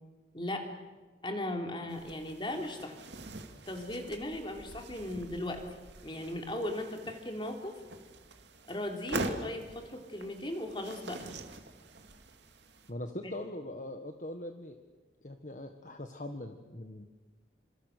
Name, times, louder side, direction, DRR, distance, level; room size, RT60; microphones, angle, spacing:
voice 1, 0.3-0.7 1.2-3.0 3.7-5.6 6.0-7.7 8.7-11.3, left 1 dB, 25° left, 3 dB, 3.4 m, -37 dB
sound 1, 1.9-12.9, right 2 dB, 70° right, 2.5 m, -44 dB
voice 2, 12.9-14.8 15.2-17.1, left 1 dB, 40° left, 6 dB, 1.5 m, -41 dB
28.0 x 27.0 x 6.8 m, 1.3 s
head